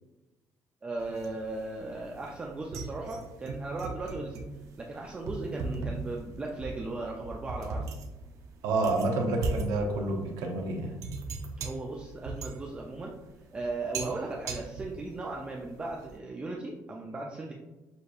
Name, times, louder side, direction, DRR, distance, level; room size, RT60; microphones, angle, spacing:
voice 1, 0.8-4.4 4.8-7.9 11.6-13.2 13.5-17.5, right 2 dB, 20° right, -1 dB, 0.4 m, -37 dB
sound 1, 1.0-16.2, right 3 dB, 65° right, 0.6 m, -39 dB
voice 2, 8.6-10.9, right 2 dB, 85° right, 1 dB, 0.9 m, -28 dB
6.5 x 2.6 x 2.5 m, 1.1 s
cardioid pair, 140°, 6 cm